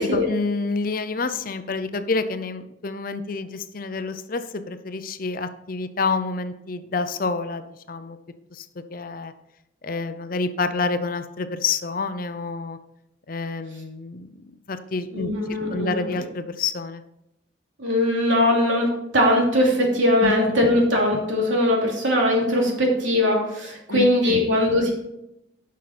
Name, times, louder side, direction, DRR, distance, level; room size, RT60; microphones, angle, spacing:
voice 1, 0.0-7.6 7.9-8.2 8.5-8.7 8.9-9.3 9.8-12.8 13.3-14.3 14.7-15.3 15.7-17.0 20.2-20.3 23.9-24.4, left 4 dB, 45° left, 10 dB, 0.6 m, -28 dB
voice 2, 15.1-16.1 17.8-24.9, left 1 dB, 80° right, -1 dB, 2.9 m, -20 dB
11.0 x 6.3 x 4.3 m, 0.84 s
head